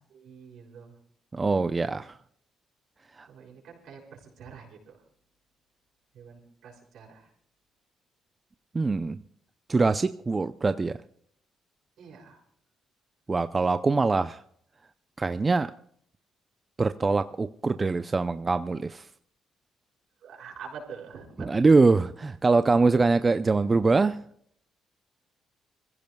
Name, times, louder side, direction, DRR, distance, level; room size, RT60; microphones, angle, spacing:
voice 1, 0.1-1.0 3.3-5.0 6.1-7.3 12.0-12.4 20.2-21.7, right 6 dB, 75° right, -1 dB, 6.0 m, -46 dB
voice 2, 1.3-2.2 3.2-3.3 8.7-9.2 9.7-11.0 13.3-14.4 15.2-15.7 16.8-19.1 21.4-24.2, right 3 dB, 30° right, 11 dB, 0.5 m, -23 dB
27.0 x 15.5 x 2.3 m, 0.66 s
cardioid pair, 90°, 0 cm